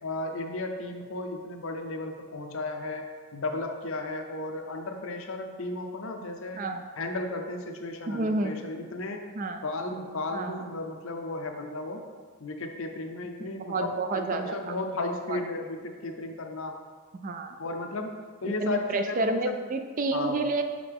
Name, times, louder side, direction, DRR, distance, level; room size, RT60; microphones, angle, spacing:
voice 1, 0.0-3.1 3.3-6.6 7.0-9.3 9.6-12.0 12.4-16.8 17.6-18.2 18.4-19.6 20.1-20.4, left 2 dB, 65° left, 4 dB, 0.6 m, -34 dB
voice 2, 8.1-8.5 9.4-9.6 10.3-10.6 13.7-14.7 15.3-15.4 17.1-17.6 18.6-20.6, right 2 dB, 35° right, 6 dB, 0.3 m, -29 dB
5.6 x 5.0 x 3.5 m, 1.5 s
head